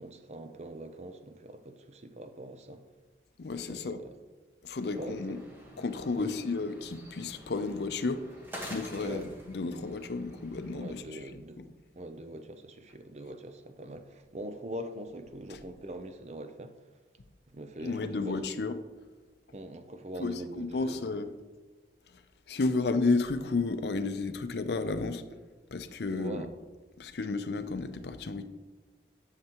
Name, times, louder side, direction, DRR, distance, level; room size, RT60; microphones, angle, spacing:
voice 1, 0.0-2.8 3.7-4.1 4.9-5.4 6.2-6.4 8.9-9.2 10.7-11.6 12.0-16.7 17.5-18.4 19.5-21.0 26.1-26.5, right 1 dB, 40° right, 0.5 m, -43 dB
voice 2, 3.4-4.0 4.6-5.4 5.8-8.2 8.5-11.7 15.5-15.6 17.8-18.7 20.2-21.3 22.1-22.2 22.5-25.2 25.7-26.5 27.0-28.5, left 3 dB, 75° left, 0.5 m, -32 dB
sound 1, 4.8-11.0, equal, 10° right, 1.2 m, -48 dB
11.0 x 6.6 x 3.0 m
head